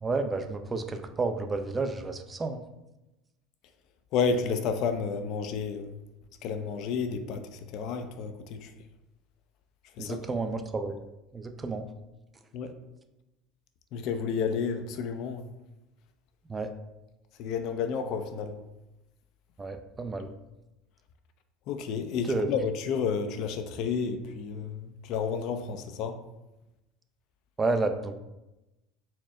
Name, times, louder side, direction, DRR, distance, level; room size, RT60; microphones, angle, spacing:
voice 1, 0.0-2.6 10.0-10.9 11.3-11.8 16.5-16.7 19.6-20.3 22.3-22.5 27.6-28.1, right 3 dB, 20° right, 7 dB, 0.4 m, -30 dB
voice 2, 4.1-5.9 6.4-8.7 10.0-10.2 12.5-12.7 13.9-15.5 17.4-18.6 21.7-26.2, left 5 dB, 60° left, 8 dB, 0.4 m, -31 dB
4.3 x 2.1 x 3.6 m, 0.97 s
supercardioid pair, 90°, 0 cm